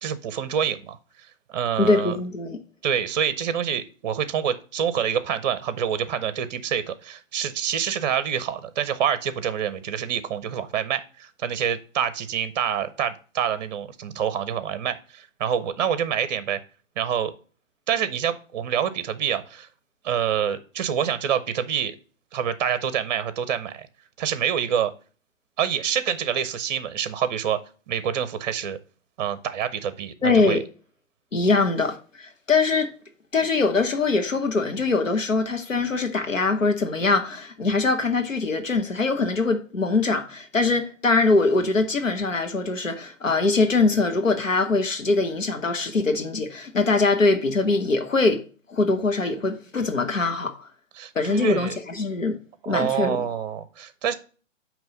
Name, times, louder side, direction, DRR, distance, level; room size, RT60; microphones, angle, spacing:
voice 1, 0.0-1.0 1.5-2.2 2.8-16.6 17.0-17.3 17.9-19.7 20.0-21.9 22.3-23.9 24.2-24.9 25.6-27.6 27.9-28.8 29.2-30.6 51.0-51.8 52.6-54.1, right 8 dB, 35° right, 0.7 m, -26 dB
voice 2, 1.8-2.6 30.2-30.6 31.3-32.9 33.3-48.4 48.7-50.7 51.1-52.4 52.6-53.3, left 3 dB, 85° left, 1.4 m, -22 dB
8.9 x 3.0 x 5.4 m
figure-of-eight pair, 130°, 38 cm